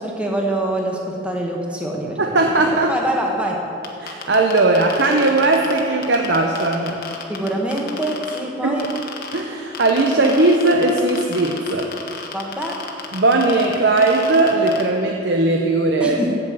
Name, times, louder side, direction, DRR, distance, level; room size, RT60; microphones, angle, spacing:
voice 1, 0.0-2.6 2.9-3.6 7.3-8.9 12.3-12.7 16.0-16.3, right 1 dB, 5° right, -1 dB, 1.2 m, -25 dB
voice 2, 2.2-2.9 4.0-7.0 8.6-8.8 9.3-11.9 13.1-16.2, right 2 dB, 65° right, 2 dB, 0.7 m, -18 dB
sound 1, 3.8-8.4 8.8-9.4 9.7-14.8, left 6 dB, 50° left, 1.1 m, -32 dB
8.7 x 7.6 x 7.8 m, 2.8 s
head